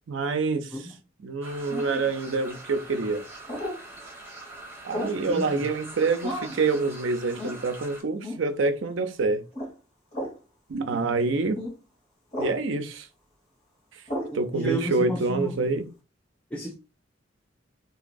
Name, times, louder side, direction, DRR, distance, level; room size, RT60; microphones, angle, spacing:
voice 1, 0.1-0.7 1.2-3.2 4.8-9.4 10.7-11.6 12.4-13.1 14.3-15.9, right 3 dB, 80° right, 0.5 m, -26 dB
sound 1, 1.4-8.0, right 2 dB, 10° right, 1.2 m, -43 dB
sound 2, 1.7-2.1 3.5-3.8 4.9-5.2 6.2-6.6 7.4-7.6 8.2-8.4 9.5-9.7 10.1-10.4 11.5-11.7 12.3-12.6 14.1-14.4, left 1 dB, 35° left, 2.1 m, -32 dB
voice 2, 5.2-5.7 14.3-15.7 16.5-16.7, right 1 dB, 5° left, 0.4 m, -32 dB
3.9 x 2.8 x 2.5 m
head